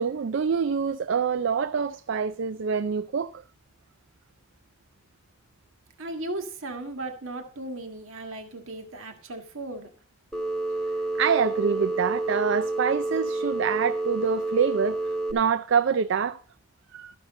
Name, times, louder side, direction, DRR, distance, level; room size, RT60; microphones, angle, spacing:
voice 1, 0.0-3.4 11.2-15.0 15.3-16.4 16.9-17.1, right 6 dB, 60° right, 0.4 m, -25 dB
voice 2, 6.0-9.9, right 2 dB, 75° right, 1.7 m, -36 dB
Telephone, 10.3-15.3, right 2 dB, 5° left, 1.4 m, -29 dB
13.5 x 5.9 x 5.3 m
head